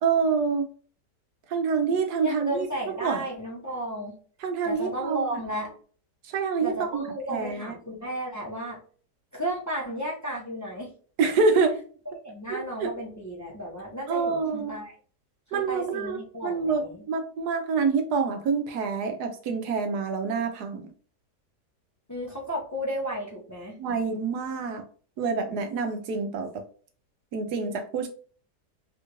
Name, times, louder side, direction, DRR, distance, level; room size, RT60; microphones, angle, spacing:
voice 1, 0.0-0.7 1.5-2.7 3.0-3.2 4.4-5.2 6.2-7.8 11.2-11.8 12.5-12.9 14.1-14.7 15.5-20.8 23.8-24.8 25.2-26.6 27.3-28.1, right 5 dB, 75° right, 5 dB, 1.2 m, -27 dB
voice 2, 2.2-4.2 4.6-5.8 6.6-8.8 9.3-10.9 12.2-14.9 15.5-17.0 22.1-23.8, right 1 dB, 15° left, -4 dB, 0.6 m, -33 dB
3.5 x 2.4 x 2.9 m, 0.42 s
omnidirectional pair, 1.8 m